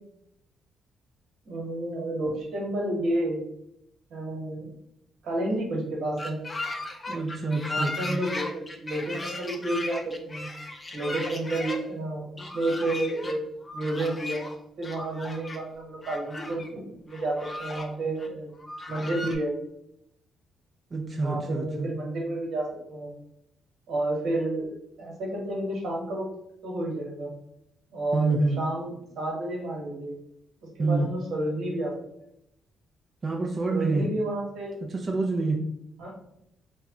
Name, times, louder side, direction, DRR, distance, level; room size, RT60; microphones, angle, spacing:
voice 1, 1.4-3.4 4.1-4.7 5.2-6.4 7.7-10.5 10.9-13.4 13.7-14.5 14.8-18.5 18.9-19.5 21.2-23.1 23.9-24.6 25.0-26.3 26.6-27.3 27.9-30.1 30.7-32.0 33.7-34.8 36.0-36.1, right 1 dB, 75° right, -1 dB, 1.3 m, -30 dB
sound 1, 6.2-11.8 12.4-13.3 13.6-14.5 14.8-15.6 16.0-16.7 17.1-17.9 18.2-18.3 18.6-19.3, left 2 dB, 25° left, 0.5 m, -36 dB
voice 2, 7.1-8.2 20.9-21.9 28.1-28.6 30.8-31.1 33.2-34.1 34.8-35.6, right 3 dB, 35° right, 1 dB, 0.5 m, -27 dB
3.1 x 2.3 x 3.6 m, 0.79 s
cardioid pair, 90°, 0 cm